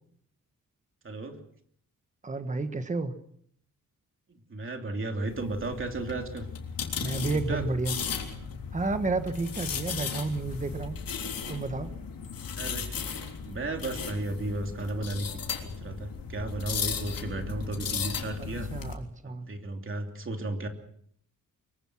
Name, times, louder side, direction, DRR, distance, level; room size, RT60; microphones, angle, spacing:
voice 1, 1.0-1.4 4.3-6.5 7.2-7.6 12.6-18.7 19.2-20.7, right 2 dB, 35° right, 4 dB, 3.0 m, -34 dB
voice 2, 2.2-3.1 7.0-8.0 8.7-11.0 11.5-11.9 18.7-19.5, right 3 dB, 20° right, 9 dB, 1.4 m, -31 dB
sound 1, 5.3-18.9, left 6 dB, 90° left, 3.5 m, -36 dB
24.0 x 23.0 x 6.2 m, 0.65 s
wide cardioid pair, 175°, 34 cm